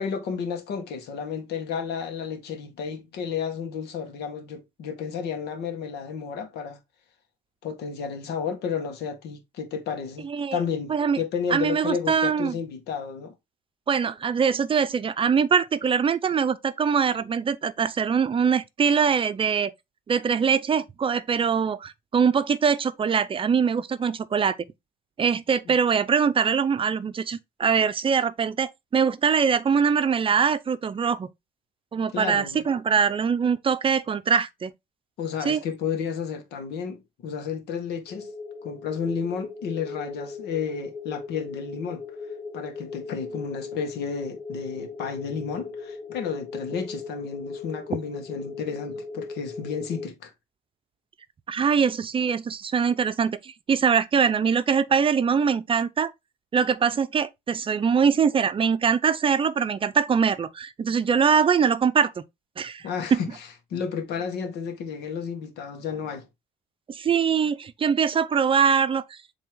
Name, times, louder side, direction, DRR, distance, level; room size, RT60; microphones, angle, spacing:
voice 1, 0.0-6.8 7.6-13.3 25.7-25.8 32.1-32.6 35.2-38.3 38.6-42.0 42.5-50.3 62.8-66.3, left 6 dB, 80° left, 1.9 m, -32 dB
voice 2, 10.2-10.6 10.9-11.2 11.5-12.6 13.9-19.7 20.1-24.6 25.2-31.3 31.9-34.7 35.4-35.6 51.5-56.1 56.5-62.2 62.6-63.2 66.9-69.2, right 6 dB, 30° right, 0.6 m, -23 dB
sound 1, 38.1-50.1, left 4 dB, 40° left, 1.0 m, -38 dB
7.6 x 3.5 x 3.8 m
cardioid pair, 110°, 17 cm